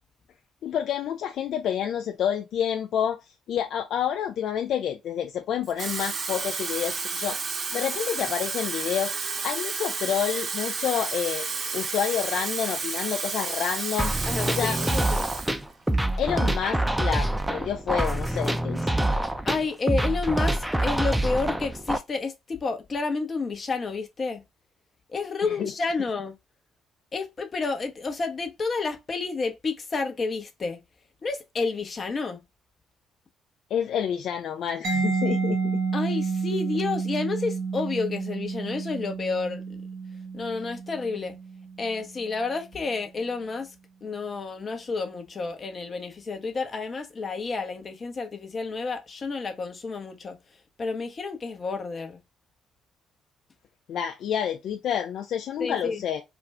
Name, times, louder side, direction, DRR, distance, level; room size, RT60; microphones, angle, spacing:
voice 1, 0.6-7.4 7.7-9.1 9.4-11.5 11.7-15.0 16.2-19.0 25.4-25.7 33.7-35.6 53.9-56.2, left 9 dB, 65° left, 0.3 m, -29 dB
Water tap faucet / Fill (with liquid), 5.6-15.6 15.9-16.2, right 4 dB, 45° right, 0.6 m, -31 dB
sound 1, 14.0-22.0, right 1 dB, 10° right, 0.4 m, -26 dB
voice 2, 14.2-15.3 19.5-24.4 25.1-26.4 27.1-30.8 31.2-32.4 35.9-39.8 40.3-41.4 41.8-43.7 44.0-50.4 50.8-52.2 55.6-56.0, left 4 dB, 40° left, 0.7 m, -30 dB
Mallet percussion, 34.8-42.4, right 5 dB, 70° right, 0.9 m, -30 dB
2.4 x 2.2 x 3.2 m
hypercardioid pair, 50°, 0 cm